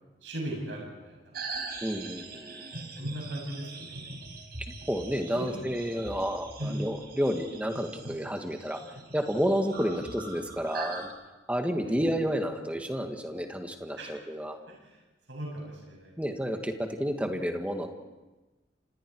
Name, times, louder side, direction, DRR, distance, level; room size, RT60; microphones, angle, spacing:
voice 1, 0.2-1.3 3.0-4.1 5.3-5.6 6.6-6.8 11.8-12.0 14.0-14.1 14.7-15.0 15.3-16.1 16.4-16.6, right 1 dB, 75° right, -2 dB, 7.8 m, -38 dB
sound 1, 1.3-11.1, right 3 dB, 60° right, 4.5 m, -42 dB
voice 2, 1.8-2.7 4.6-11.1 11.5-14.6 16.2-17.9, equal, 5° right, 4 dB, 1.8 m, -31 dB
30.0 x 26.5 x 4.7 m, 1.2 s
head